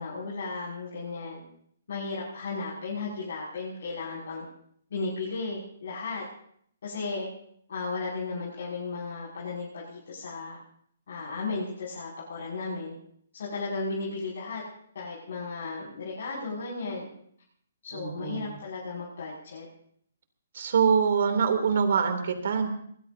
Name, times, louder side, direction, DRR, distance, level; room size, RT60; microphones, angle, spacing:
voice 1, 0.0-1.4 1.9-4.5 4.9-6.2 6.8-7.3 7.7-10.6 11.1-12.9 13.3-14.6 14.9-17.1 17.8-19.7, left 3 dB, 65° left, -6 dB, 6.7 m, -35 dB
voice 2, 17.9-18.4 20.5-22.7, right 6 dB, 60° right, 6 dB, 3.1 m, -24 dB
23.5 x 20.0 x 2.9 m, 0.65 s
hypercardioid pair, 165°, 0 cm